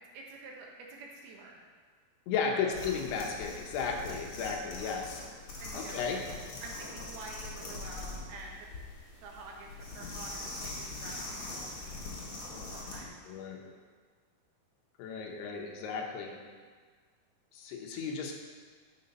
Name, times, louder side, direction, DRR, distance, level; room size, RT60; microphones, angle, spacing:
voice 1, 0.1-1.6 2.4-2.7 5.6-6.2 6.6-8.6 9.2-12.1 12.7-13.3, right 3 dB, 75° right, -1 dB, 2.9 m, -48 dB
voice 2, 2.3-5.2 5.7-6.2 6.5-6.6 13.3-13.6 15.0-16.3 17.5-18.3, left 5 dB, 80° left, 1 dB, 3.1 m, -34 dB
sound 1, 2.7-13.1, left 2 dB, 50° left, 1.9 m, -42 dB
11.0 x 5.1 x 5.4 m, 1.5 s
omnidirectional pair, 4.7 m